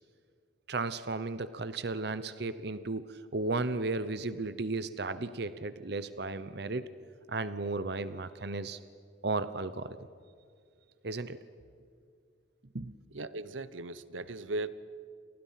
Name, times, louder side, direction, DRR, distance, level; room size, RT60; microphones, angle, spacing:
voice 1, 0.7-6.8 7.3-8.8 9.2-10.0 11.0-11.4 12.7-12.9, right 3 dB, 55° right, 13 dB, 0.9 m, -34 dB
voice 2, 13.1-14.7, right 2 dB, 85° right, 15 dB, 1.1 m, -37 dB
29.5 x 29.5 x 5.9 m, 2.3 s
head